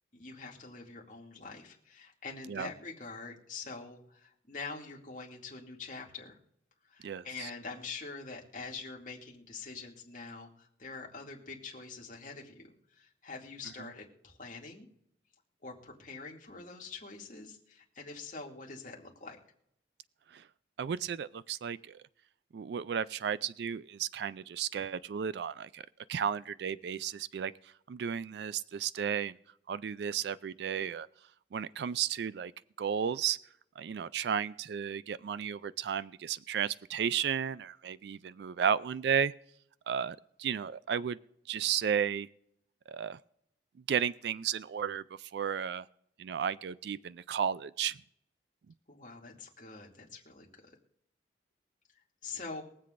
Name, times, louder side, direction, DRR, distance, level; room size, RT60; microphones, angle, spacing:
voice 1, 0.1-6.4 6.9-14.9 15.6-19.4 48.9-50.7 52.2-52.6, left 4 dB, 45° left, -1 dB, 2.4 m, -45 dB
voice 2, 7.0-7.5 20.3-20.4 20.8-22.0 22.5-25.8 26.1-29.3 29.7-31.1 31.5-32.5 32.8-33.4 33.8-39.3 39.9-41.2 41.5-42.3 42.9-43.2 43.9-45.9 46.2-48.0, right 8 dB, 65° right, 17 dB, 0.3 m, -33 dB
23.0 x 7.7 x 2.5 m, 0.75 s
head